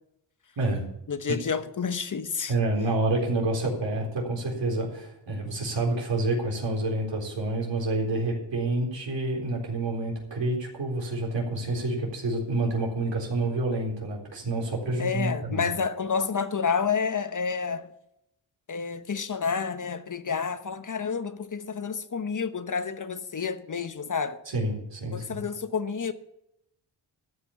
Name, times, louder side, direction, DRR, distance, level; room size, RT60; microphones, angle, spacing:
voice 1, 1.1-2.5 15.0-17.9 18.7-24.4 25.1-26.1, left 6 dB, 45° left, 1.0 m, -29 dB
voice 2, 2.5-15.7 24.5-25.4, right 2 dB, 75° right, 4.0 m, -28 dB
14.0 x 5.8 x 8.2 m
cardioid pair, 65°, 44 cm